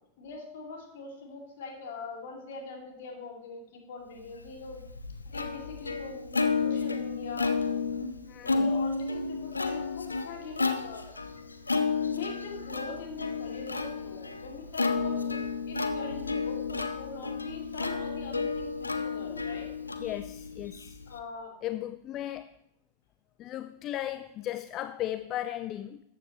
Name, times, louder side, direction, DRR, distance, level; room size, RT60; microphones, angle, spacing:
voice 1, 0.2-4.8 5.3-7.5 8.4-11.1 12.1-15.3 15.7-19.7 21.1-21.6, left 3 dB, 55° left, 1 dB, 2.5 m, -42 dB
Plucked string instrument, 4.4-21.2, left 4 dB, 80° left, 0.6 m, -32 dB
voice 2, 8.2-8.7 20.0-21.0 21.6-22.5 23.4-26.0, left 13 dB, 35° left, 13 dB, 0.4 m, -36 dB
14.0 x 9.3 x 3.1 m, 0.82 s
figure-of-eight pair, 90°, 0 cm